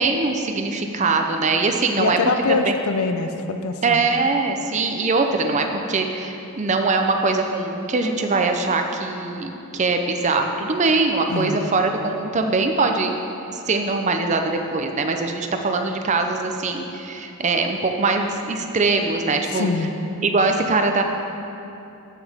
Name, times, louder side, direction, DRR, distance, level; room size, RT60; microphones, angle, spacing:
voice 1, 0.0-2.2 2.5-2.7 3.8-13.1 13.5-19.7 20.2-21.0, right 3 dB, 30° right, 5 dB, 0.5 m, -22 dB
voice 2, 2.0-4.0 11.3-11.6 19.5-19.9, left 3 dB, 80° left, 7 dB, 0.6 m, -24 dB
13.5 x 5.9 x 3.5 m, 2.9 s
head